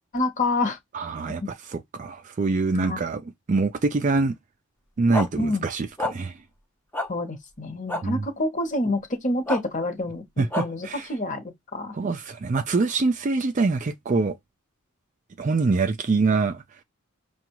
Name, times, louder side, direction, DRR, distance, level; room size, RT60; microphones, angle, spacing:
voice 1, 0.1-0.8 1.4-1.5 2.7-3.0 5.4-5.6 7.1-12.0, left 2 dB, 35° left, 0.9 m, -27 dB
voice 2, 0.9-4.3 5.0-6.4 8.0-8.3 10.4-11.1 11.9-14.4 15.4-16.6, right 3 dB, 35° right, 0.3 m, -25 dB
sound 1, 5.1-5.3 6.0-6.1 6.9-7.1 7.9-8.0 9.5-9.6 10.5-10.7, left 1 dB, 10° left, 0.7 m, -26 dB
5.9 x 2.3 x 3.0 m
head